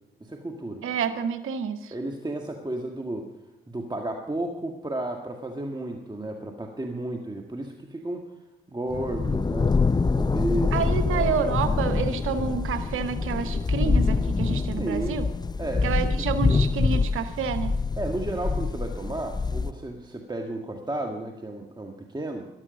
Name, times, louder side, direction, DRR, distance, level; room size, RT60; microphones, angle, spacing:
voice 1, 0.2-0.8 1.9-3.3 3.7-8.2 8.7-11.3 14.8-15.2 15.6-16.3 18.0-22.5, right 1 dB, 20° right, 2 dB, 1.6 m, -33 dB
voice 2, 0.8-1.9 10.7-15.2 15.8-17.7, right 6 dB, 80° right, 10 dB, 1.0 m, -29 dB
sound 1, 8.9-19.7, left 4 dB, 20° left, 0.5 m, -25 dB
13.5 x 12.0 x 5.2 m, 1.0 s
supercardioid pair, 50°, 21 cm